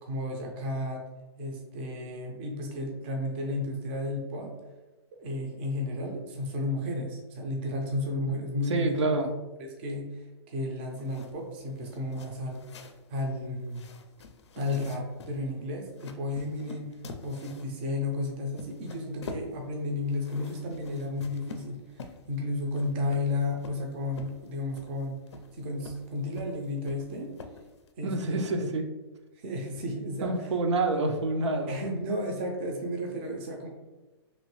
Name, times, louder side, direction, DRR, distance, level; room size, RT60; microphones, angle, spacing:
voice 1, 0.0-1.0 1.4-4.5 5.2-9.3 9.6-12.6 13.1-13.8 14.6-16.9 17.2-25.1 25.5-27.3 28.0-28.7 29.4-30.5 31.7-33.7, left 2 dB, 25° right, 1 dB, 0.4 m, -33 dB
voice 2, 8.7-9.3 28.0-28.8 30.2-31.7, right 2 dB, 85° right, 4 dB, 0.6 m, -27 dB
sound 1, 10.9-27.9, left 5 dB, 75° left, 0.5 m, -48 dB
3.0 x 3.0 x 3.0 m, 1.1 s
hypercardioid pair, 165°, 15 cm